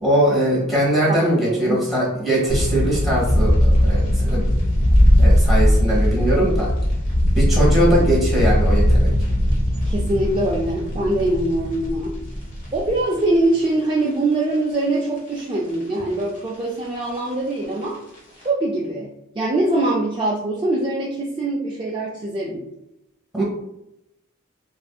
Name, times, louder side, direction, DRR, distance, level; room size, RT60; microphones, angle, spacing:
voice 1, 0.0-4.7 5.2-6.7 7.3-9.1 23.3-23.4, right 1 dB, ahead, -6 dB, 1.1 m, -21 dB
voice 2, 1.4-1.8 9.8-12.1 12.7-18.0 18.4-19.1 19.4-22.7, right 2 dB, 25° right, -4 dB, 0.3 m, -23 dB
sound 1, 2.5-14.0 14.3-14.4 14.9-15.7 16.1-16.2 16.5-17.8 18.2-18.4, equal, 40° left, 0.9 m, -19 dB
3.3 x 2.6 x 2.3 m, 0.84 s
head